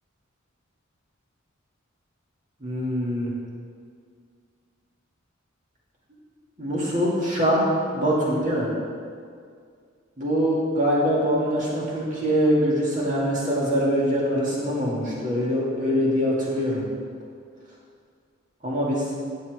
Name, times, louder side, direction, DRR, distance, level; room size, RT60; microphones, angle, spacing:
voice 1, 2.6-3.3 6.6-8.7 10.2-16.8 18.6-19.1, equal, 40° right, -6 dB, 2.4 m, -23 dB
12.0 x 7.5 x 3.6 m, 2.2 s
head